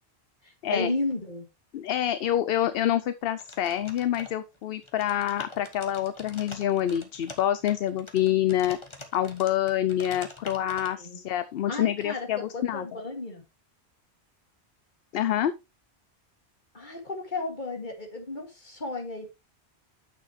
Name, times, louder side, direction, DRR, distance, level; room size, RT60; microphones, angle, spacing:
voice 1, 0.4-1.5 11.0-11.2 11.7-13.4 16.7-19.3, left 2 dB, 45° left, 2.5 m, -33 dB
voice 2, 1.7-8.8 9.1-12.9 15.1-15.5, left 11 dB, 70° left, 0.8 m, -27 dB
sound 1, 3.4-4.6 4.8-10.9, left 2 dB, 25° left, 1.3 m, -45 dB
9.1 x 7.0 x 3.1 m
omnidirectional pair, 1.1 m